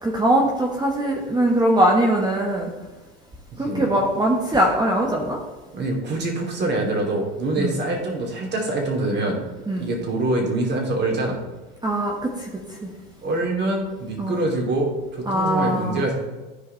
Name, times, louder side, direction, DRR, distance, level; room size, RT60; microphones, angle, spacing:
voice 1, 0.0-2.7 3.6-5.4 7.6-7.8 9.7-9.9 11.8-12.5 12.8-12.9 14.2-14.4 15.3-16.0, right 1 dB, 15° right, 0 dB, 1.4 m, -21 dB
voice 2, 3.5-3.9 4.5-4.6 5.7-9.4 9.8-11.4 13.2-16.1, right 2 dB, 35° right, 0 dB, 2.9 m, -25 dB
14.0 x 4.8 x 3.3 m, 1.2 s
hypercardioid pair, 95°, 30 cm